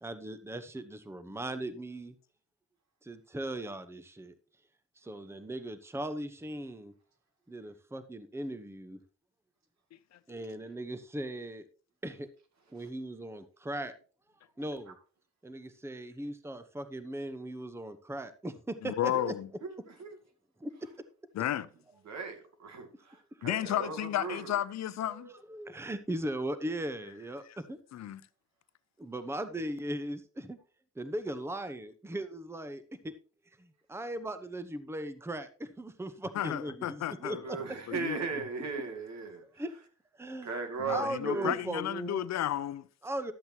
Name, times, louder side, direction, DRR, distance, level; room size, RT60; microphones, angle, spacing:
voice 1, 0.0-2.1 3.0-4.3 5.0-6.9 7.5-9.0 10.3-11.6 12.0-12.3 12.7-13.9 14.6-14.9 15.4-19.3 20.6-20.7 25.1-27.8 29.0-30.6 31.0-33.1 33.6-37.6 37.9-38.1 39.6-39.7 40.2-40.5 40.9-42.3 43.0-43.3, right 1 dB, 10° right, 0.9 m, -38 dB
voice 2, 18.8-19.5 21.3-21.7 23.4-25.3 27.9-28.2 36.3-37.4 37.9-38.3 40.8-42.9, left 12 dB, 60° left, 0.7 m, -33 dB
voice 3, 22.1-24.6 37.2-39.4 40.4-41.6, right 4 dB, 60° right, 2.4 m, -37 dB
12.5 x 7.8 x 2.9 m
cardioid pair, 90°, 30 cm